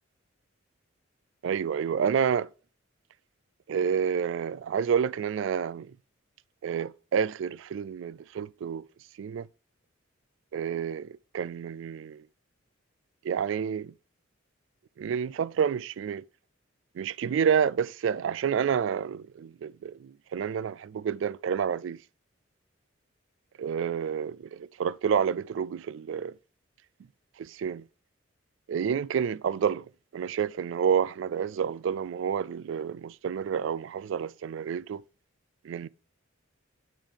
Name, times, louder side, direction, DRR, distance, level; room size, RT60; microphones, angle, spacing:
voice 1, 1.4-2.5 3.7-5.9 6.6-8.9 9.2-9.5 10.5-12.2 13.2-13.9 15.0-16.2 16.9-22.0 23.6-26.4 27.4-27.8 28.7-35.0 35.6-35.9, right 7 dB, 65° right, 0.3 m, -29 dB
8.9 x 5.5 x 3.4 m
head